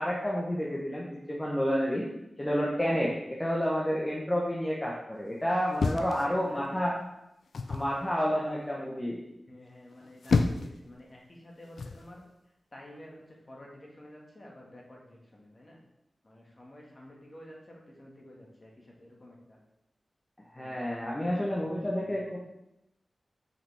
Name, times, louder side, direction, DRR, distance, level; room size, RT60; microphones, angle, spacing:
voice 1, 0.0-2.1 2.4-7.0 7.7-9.2 20.5-22.4, equal, 20° left, -4 dB, 1.1 m, -30 dB
sound 1, 5.8-6.8 7.5-7.9 9.9-10.8 11.8-12.1, left 4 dB, 80° left, 0.4 m, -29 dB
voice 2, 5.9-6.8 8.2-8.8 9.5-12.2 12.7-15.8 16.2-19.6 20.6-20.8 21.2-22.2, left 1 dB, 35° left, -2 dB, 1.8 m, -51 dB
5.7 x 5.5 x 3.5 m, 0.87 s
cardioid pair, 60°, 0 cm